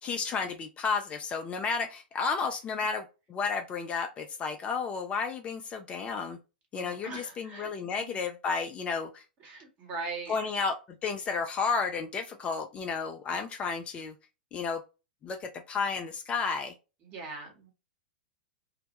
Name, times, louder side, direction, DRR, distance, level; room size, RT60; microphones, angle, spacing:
voice 1, 0.0-6.4 6.7-9.2 10.3-14.1 14.5-14.8 15.2-16.7, left 5 dB, 25° left, 5 dB, 0.3 m, -32 dB
voice 2, 6.7-8.2 9.4-10.5 17.0-17.7, right 3 dB, 30° right, 2 dB, 1.0 m, -41 dB
2.1 x 2.1 x 2.8 m, 0.29 s
figure-of-eight pair, 100°, 5 cm